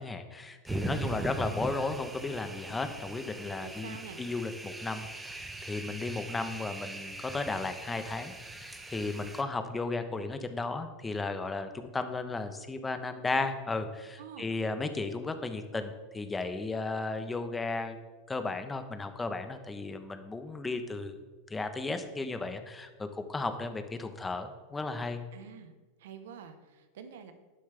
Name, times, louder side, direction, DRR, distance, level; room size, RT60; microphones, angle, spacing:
voice 1, 0.0-18.0 18.3-21.2 21.5-25.2, left 3 dB, 15° left, 8 dB, 1.0 m, -35 dB
sound 1, 0.7-9.4, right 2 dB, 10° right, 0.9 m, -40 dB
voice 2, 0.9-1.4 3.6-4.2 14.2-14.5 25.3-25.7 26.0-27.3, right 7 dB, 80° right, 8 dB, 1.1 m, -47 dB
11.5 x 9.4 x 3.4 m, 1.3 s
supercardioid pair, 120°, 0 cm